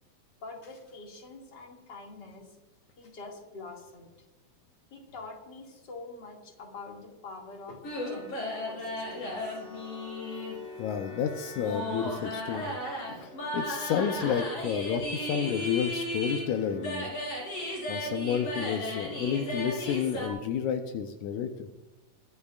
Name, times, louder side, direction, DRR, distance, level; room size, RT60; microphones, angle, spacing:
voice 1, 0.4-2.5 3.0-4.1 4.9-9.6 13.1-13.5, left 3 dB, 35° left, 0 dB, 2.7 m, -45 dB
sound 1, 7.8-20.3, left 1 dB, 55° left, 4.7 m, -35 dB
voice 2, 10.8-12.8 13.5-17.1 17.9-21.7, left 7 dB, 80° left, 6 dB, 2.3 m, -30 dB
22.5 x 14.0 x 2.5 m, 1.1 s
omnidirectional pair, 3.4 m